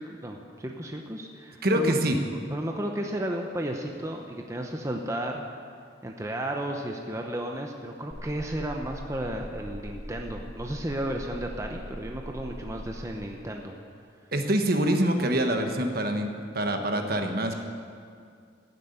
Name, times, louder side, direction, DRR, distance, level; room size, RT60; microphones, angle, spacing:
voice 1, 0.0-1.9 2.3-5.5 6.0-13.8, right 1 dB, 15° right, 2 dB, 0.8 m, -33 dB
voice 2, 1.6-2.2 14.3-17.5, right 1 dB, 50° right, 5 dB, 1.3 m, -25 dB
sound 1, 8.1-13.1, equal, 20° left, 1.9 m, -41 dB
15.0 x 7.9 x 9.1 m, 2.2 s
head